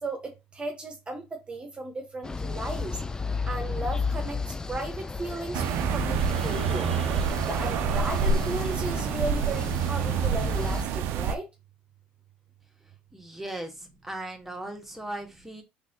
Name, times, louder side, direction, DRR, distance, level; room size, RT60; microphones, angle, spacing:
voice 1, 0.0-1.2 1.5-3.0 3.5-4.4 4.7-6.9 7.5-11.4, right 2 dB, 25° right, 1.0 m, -35 dB
sound 1, 2.2-10.8, left 4 dB, 15° left, 0.3 m, -33 dB
sound 2, 5.5-11.4, right 7 dB, 65° right, 0.4 m, -27 dB
voice 2, 13.1-15.6, right 1 dB, 5° right, 1.3 m, -38 dB
3.9 x 3.3 x 2.8 m
supercardioid pair, 80°, 4 cm